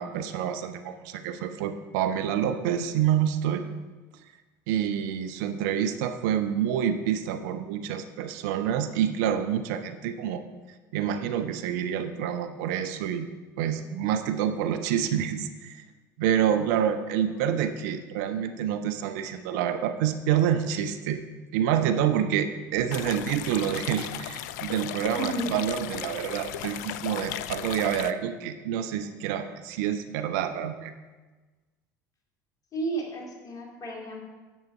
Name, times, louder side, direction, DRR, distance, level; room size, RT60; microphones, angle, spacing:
voice 1, 0.0-3.6 4.7-10.4 10.9-13.3 13.6-15.8 16.2-21.2 21.5-31.0, right 9 dB, 65° right, 9 dB, 0.7 m, -27 dB
sound 1, 22.9-28.1, left 13 dB, 65° left, 0.4 m, -36 dB
voice 2, 25.2-25.5 32.7-34.2, right 2 dB, 40° left, 0 dB, 2.5 m, -33 dB
10.0 x 7.8 x 4.5 m, 1.3 s
hypercardioid pair, 65°, 10 cm